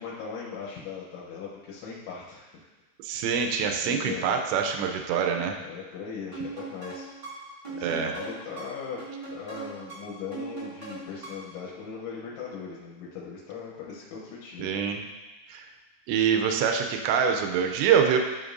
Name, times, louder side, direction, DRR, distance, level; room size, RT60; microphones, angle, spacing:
voice 1, 0.0-2.7 3.8-4.4 5.6-7.1 7.7-9.0 9.3-14.8, left 6 dB, 80° left, -5 dB, 3.2 m, -39 dB
voice 2, 3.0-5.6 7.8-8.1 14.6-15.0 15.5-15.7 16.1-18.2, right 7 dB, 85° right, 4 dB, 2.6 m, -25 dB
sound 1, 6.3-11.6, right 3 dB, 35° right, 0.7 m, -40 dB
11.0 x 5.2 x 2.6 m, 1.2 s
omnidirectional pair, 5.6 m